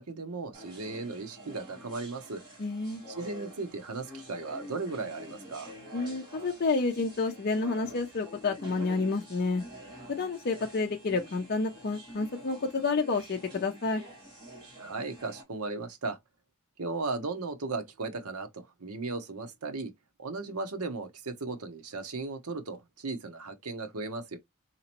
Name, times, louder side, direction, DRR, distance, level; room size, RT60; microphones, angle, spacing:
voice 1, 0.0-2.4 3.1-5.7 14.8-16.2 16.8-19.9 20.2-24.4, right 3 dB, 85° right, 0.8 m, -36 dB
sound 1, 0.5-15.4, equal, 20° right, 2.3 m, -47 dB
voice 2, 2.6-3.0 5.9-9.6 10.1-14.0, left 3 dB, 45° left, 0.5 m, -29 dB
4.0 x 2.9 x 2.9 m
head